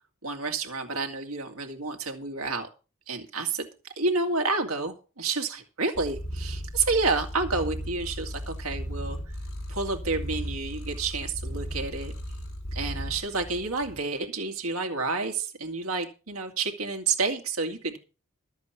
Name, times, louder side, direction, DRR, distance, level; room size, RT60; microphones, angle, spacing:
voice 1, 0.2-2.7 3.1-3.7 4.0-9.2 9.7-12.1 12.7-18.0, right 3 dB, 85° right, 4 dB, 2.4 m, -29 dB
Purr, 5.9-14.0, equal, 70° left, 4.7 m, -36 dB
13.0 x 8.0 x 5.9 m, 0.35 s
head